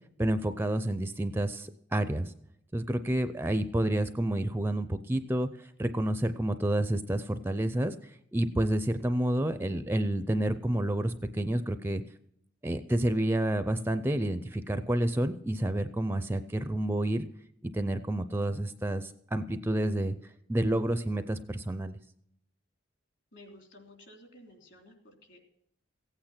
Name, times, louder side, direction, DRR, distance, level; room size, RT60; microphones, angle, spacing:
voice 1, 0.2-2.3 2.7-12.0 12.6-17.3 17.6-20.1 20.5-22.0, right 1 dB, 10° right, 11 dB, 0.4 m, -29 dB
voice 2, 23.3-25.4, left 1 dB, 60° left, 3 dB, 3.2 m, -53 dB
15.5 x 8.8 x 5.8 m, 0.76 s
head